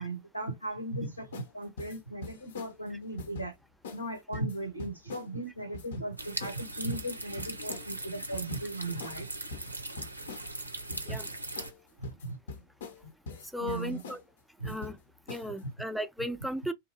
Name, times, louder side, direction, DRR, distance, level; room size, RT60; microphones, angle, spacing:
voice 1, 0.0-3.5 3.9-9.3 10.9-11.2 12.0-12.4 13.6-14.0 14.6-14.8 15.6-15.7, right 2 dB, 90° left, 0.9 m, -37 dB
sound 1, 1.3-1.5 1.8-2.8 3.2-3.5 3.8-4.0 4.3-5.3 5.7-6.1 6.4-6.6 6.9-7.9 8.3-8.7 9.0-9.2 9.5-10.5 10.9-11.3 11.6-11.8 12.0-13.0 13.3-14.2 14.6-15.0 15.3-15.6, left 3 dB, 60° left, 0.6 m, -43 dB
sound 2, 6.2-11.7, right 2 dB, 85° right, 0.5 m, -40 dB
voice 2, 13.5-14.2 14.6-15.0 15.3-16.7, equal, ahead, 0.3 m, -35 dB
2.8 x 2.2 x 2.7 m
figure-of-eight pair, 90°, 0 cm